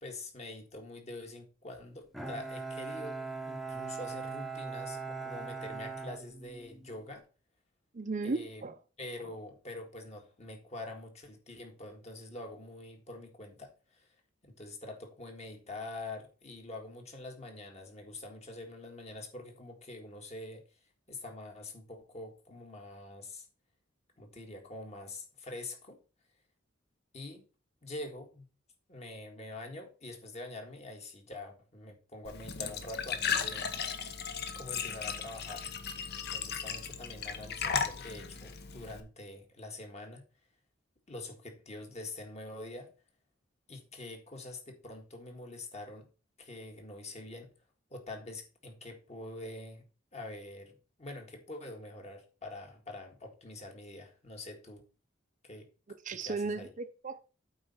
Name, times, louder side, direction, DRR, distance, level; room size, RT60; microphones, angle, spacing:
voice 1, 0.0-3.2 3.4-7.2 8.2-8.6 9.0-14.1 14.4-20.6 21.1-23.5 24.2-26.0 27.1-27.4 27.8-28.5 28.9-33.7 34.5-35.7 36.3-40.2 41.1-42.9 43.7-46.1 46.4-47.5 47.9-49.8 50.1-54.8 55.4-55.7 56.1-56.7, left 2 dB, 35° left, 1.7 m, -45 dB
Bowed string instrument, 2.1-7.0, right 4 dB, ahead, 0.8 m, -40 dB
voice 2, 7.9-8.7 56.1-57.2, right 3 dB, 40° right, 0.5 m, -35 dB
Glass / Trickle dribble / Fill (with liquid), 32.2-39.0, left 6 dB, 55° left, 0.9 m, -36 dB
8.7 x 4.1 x 5.6 m
head